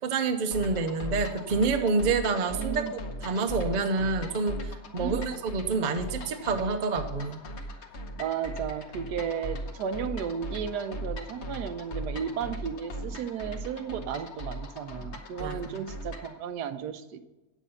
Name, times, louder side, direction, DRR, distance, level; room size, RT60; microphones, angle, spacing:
voice 1, 0.0-2.9 3.2-7.4 15.4-15.9, right 4 dB, 45° right, 7 dB, 0.6 m, -28 dB
sound 1, 0.5-16.4, equal, 50° left, 1.2 m, -38 dB
voice 2, 2.3-2.9 5.0-5.3 8.2-17.2, right 8 dB, 85° right, 10 dB, 1.2 m, -34 dB
9.1 x 7.2 x 5.6 m, 1.1 s
omnidirectional pair, 1.7 m